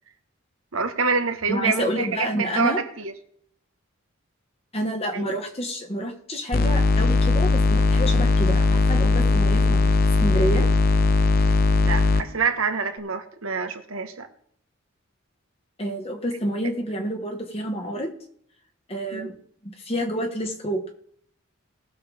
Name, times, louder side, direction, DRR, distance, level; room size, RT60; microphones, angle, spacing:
voice 1, 0.7-3.1 5.1-5.3 11.8-14.3 19.1-19.3, right 5 dB, 85° right, 7 dB, 1.4 m, -26 dB
voice 2, 1.5-2.8 4.7-9.8 10.2-10.7 15.8-18.1 18.9-19.3 19.6-20.9, equal, 30° left, 3 dB, 1.5 m, -28 dB
sound 1, 6.5-12.2, left 3 dB, 45° left, 0.5 m, -19 dB
20.0 x 7.0 x 3.5 m, 0.65 s
head